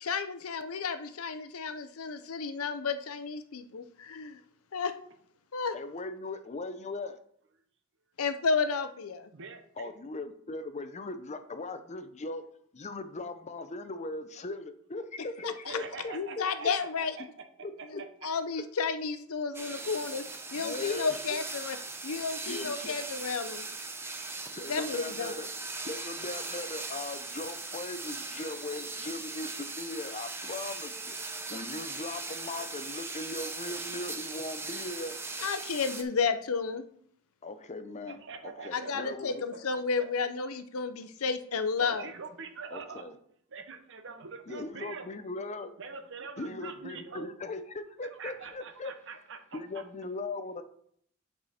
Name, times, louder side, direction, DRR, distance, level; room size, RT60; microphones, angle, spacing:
voice 1, 0.0-4.4 4.7-4.9 5.5-5.8 8.2-9.3 15.4-15.8 16.1-17.1 17.9-20.2 20.5-21.8 22.0-23.6 24.7-25.3 35.4-36.9 38.7-42.1, left 5 dB, 75° left, 10 dB, 0.7 m, -32 dB
voice 2, 5.7-7.2 9.8-12.4 12.7-16.4 17.6-18.0 20.5-21.4 22.4-23.0 24.5-25.5 25.8-31.1 31.5-35.2 37.4-39.4 42.7-43.2 44.5-45.7 46.4-48.9 49.5-50.6, left 2 dB, 30° left, 10 dB, 0.6 m, -39 dB
voice 3, 9.3-9.9 15.7-17.3 17.8-17.9 38.1-40.1 41.8-43.0 43.5-45.1 45.8-47.3 48.0-49.8, right 5 dB, 60° right, 7 dB, 1.0 m, -44 dB
sound 1, 19.5-36.0, right 3 dB, 10° right, 0.7 m, -39 dB
8.8 x 4.9 x 4.2 m, 0.65 s
head